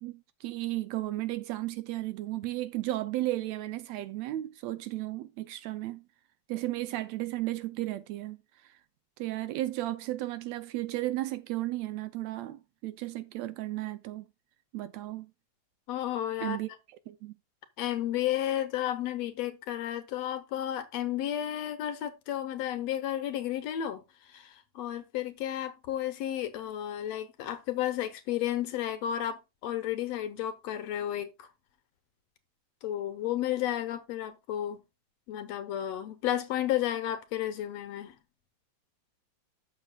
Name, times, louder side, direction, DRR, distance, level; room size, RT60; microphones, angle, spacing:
voice 1, 0.0-6.0 6.5-8.4 8.6-8.8 9.2-14.3 14.7-15.3 16.4-16.7 17.1-17.3, right 16 dB, 75° right, 1.7 m, -34 dB
voice 2, 15.9-16.6 17.8-31.5 32.8-34.8 35.3-38.2, left 12 dB, 70° left, 2.0 m, -32 dB
12.5 x 7.0 x 2.3 m
omnidirectional pair, 3.3 m